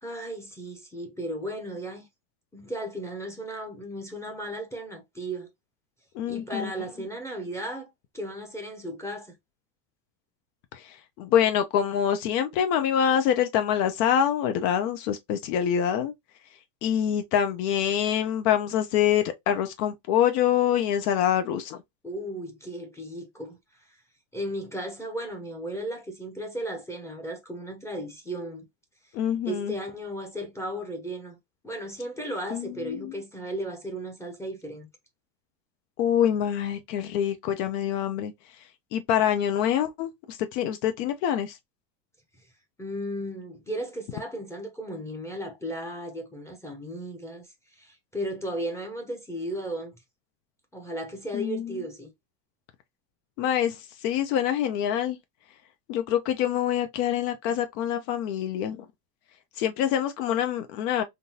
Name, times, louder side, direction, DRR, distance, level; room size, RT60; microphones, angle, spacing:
voice 1, 0.0-2.1 2.5-5.5 6.3-7.9 8.1-9.3 22.0-23.6 24.3-28.6 29.4-31.4 31.6-34.9 42.8-49.9 50.7-52.1, right 1 dB, 5° left, 0.6 m, -35 dB
voice 2, 6.1-6.7 10.7-16.1 16.8-21.8 29.1-29.7 32.5-33.1 36.0-38.3 38.9-41.6 51.3-51.8 53.4-55.2 55.9-58.9 59.6-61.0, left 9 dB, 75° left, 0.8 m, -25 dB
3.7 x 2.4 x 2.7 m
supercardioid pair, 140°, 49 cm